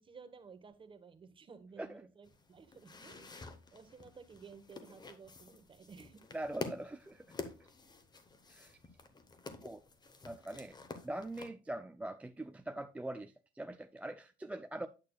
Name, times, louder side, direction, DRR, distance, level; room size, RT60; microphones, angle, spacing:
voice 1, 0.0-3.3 3.7-6.2, right 5 dB, 30° right, 1.0 m, -55 dB
sound 1, 2.2-11.5, left 4 dB, 25° left, 0.9 m, -49 dB
voice 2, 6.3-7.3 8.5-8.8 9.6-9.8 10.2-10.8 11.0-14.9, right 1 dB, 10° right, 0.3 m, -42 dB
8.7 x 6.4 x 2.2 m
cardioid pair, 110°, 17 cm